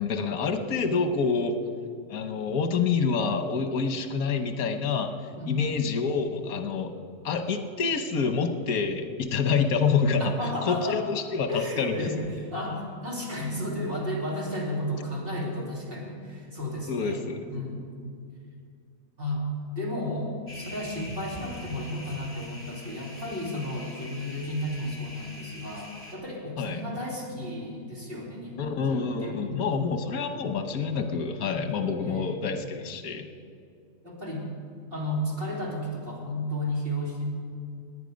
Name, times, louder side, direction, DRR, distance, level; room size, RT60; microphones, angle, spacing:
voice 1, 0.0-1.5 2.1-5.1 5.5-6.9 7.2-10.3 10.6-12.1 16.9-17.5 26.6-26.8 28.6-33.3, left 5 dB, 90° left, 7 dB, 1.4 m, -27 dB
voice 2, 5.4-5.7 10.2-11.0 11.5-17.9 19.2-19.5 19.8-29.7 31.8-32.3 34.0-34.5 34.9-37.2, left 1 dB, 40° right, -3 dB, 3.0 m, -33 dB
sound 1, 20.5-26.2, left 1 dB, 10° left, 2.5 m, -43 dB
18.0 x 10.0 x 5.2 m, 2.4 s
omnidirectional pair, 1.5 m